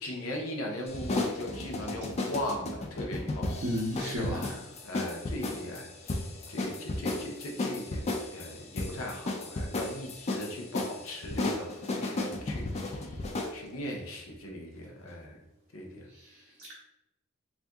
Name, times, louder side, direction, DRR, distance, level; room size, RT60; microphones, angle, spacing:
voice 1, 0.0-3.5 4.0-4.5 4.8-13.2 13.5-15.4 15.7-16.1, left 1 dB, 65° left, 0 dB, 0.7 m, -38 dB
sound 1, 0.9-13.6, left 2 dB, 30° left, 0.4 m, -34 dB
voice 2, 3.6-4.6 16.1-16.8, equal, 50° right, -4 dB, 0.6 m, -34 dB
2.6 x 2.6 x 3.4 m, 0.89 s
head